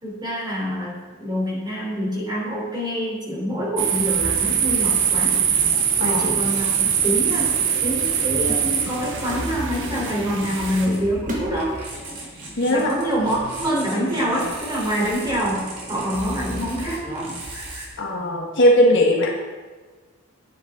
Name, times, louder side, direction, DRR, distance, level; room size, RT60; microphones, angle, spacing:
voice 1, 0.0-5.4 6.0-11.8 12.7-17.3, equal, 20° right, -5 dB, 3.4 m, -26 dB
sound 1, 3.8-10.9, right 8 dB, 55° right, 0.9 m, -23 dB
sound 2, 4.1-17.8, right 1 dB, 90° right, 3.6 m, -35 dB
sound 3, 6.0-7.0 7.2-7.5 8.0-8.2 8.5-10.0 10.4-10.5 10.9-12.2, equal, 35° right, 1.6 m, -35 dB
voice 2, 12.6-12.9 18.0-19.3, left 1 dB, 55° left, 0 dB, 1.4 m, -18 dB
10.5 x 9.6 x 3.7 m, 1.4 s
head